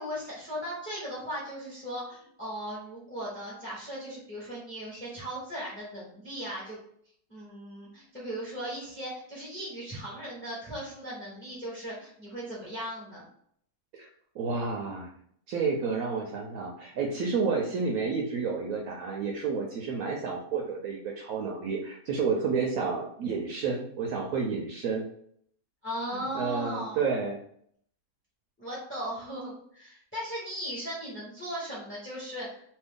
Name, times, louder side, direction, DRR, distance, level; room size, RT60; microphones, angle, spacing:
voice 1, 0.0-6.8 7.3-13.2 22.5-22.6 25.8-27.0 28.6-32.6, equal, 10° left, -6 dB, 0.8 m, -37 dB
voice 2, 14.3-15.1 15.5-25.0 26.1-27.4, right 5 dB, 70° right, 1 dB, 0.9 m, -30 dB
2.8 x 2.6 x 3.6 m, 0.65 s
omnidirectional pair, 1.7 m